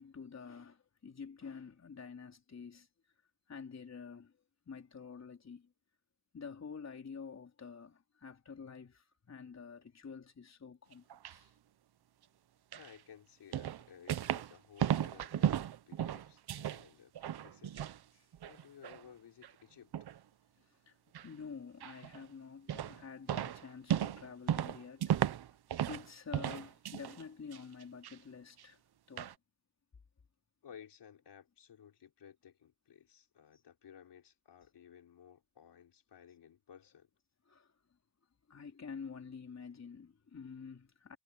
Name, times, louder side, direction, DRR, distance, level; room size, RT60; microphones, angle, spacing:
voice 1, 0.0-2.9 3.5-4.4 4.7-5.7 6.3-11.5 18.2-18.3 20.9-21.0 21.2-25.1 25.9-28.8 29.1-29.3 37.5-37.7 38.5-41.2, left 5 dB, 40° left, 4.0 m, -48 dB
sound 1, 10.9-11.4 12.7-12.9 13.5-14.5 14.8-16.8 17.1-18.0 18.3-19.0 19.4-19.5 19.9-20.2 21.1-21.3 21.8-22.2 22.7-23.0 23.3-26.1 26.3-27.2 27.5-28.1 28.6-28.7 29.2-29.3, right 10 dB, 70° right, 0.9 m, -35 dB
voice 2, 12.7-17.9 18.4-20.0 30.6-37.1, left 8 dB, 90° left, 4.5 m, -57 dB
wide cardioid pair, 155°, 40 cm